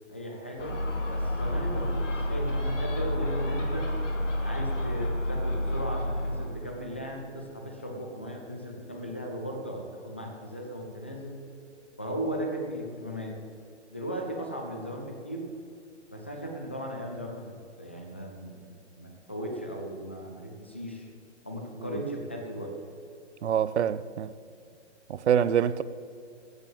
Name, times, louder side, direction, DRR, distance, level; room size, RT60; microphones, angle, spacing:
voice 1, 0.1-0.8 1.1-3.9 4.4-11.4 12.0-13.4 13.9-15.5 16.1-21.1 21.4-22.7, equal, 10° left, 0.4 m, -37 dB
Gull seagull, 0.6-6.5, left 1 dB, 85° left, 3.0 m, -29 dB
voice 2, 23.4-24.3 25.1-25.8, right 8 dB, 65° right, 0.7 m, -25 dB
14.5 x 8.1 x 7.3 m
hypercardioid pair, 155°, 36 cm